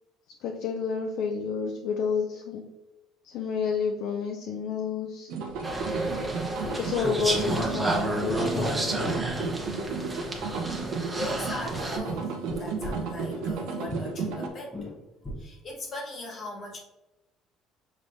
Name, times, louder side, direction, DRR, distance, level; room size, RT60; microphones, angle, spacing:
voice 1, 0.4-2.6 3.2-5.3 6.8-8.9, left 6 dB, 70° left, 2 dB, 0.4 m, -30 dB
sound 1, 5.3-14.5, right 5 dB, 75° right, 0.7 m, -33 dB
sound 2, 5.5-5.9 6.1-6.2 6.6-6.8 7.1-7.9 8.2-9.5 9.8-10.0 10.4-10.5 10.8-10.9 11.3-13.6 13.9-15.5, left 1 dB, 15° left, 0.9 m, -39 dB
sound 3, 5.6-12.0, right 2 dB, 15° right, 1.0 m, -31 dB
voice 2, 11.1-14.9 15.4-16.8, left 1 dB, 45° left, 0 dB, 1.4 m, -38 dB
6.1 x 3.3 x 2.6 m, 1.0 s
cardioid pair, 105°, 0 cm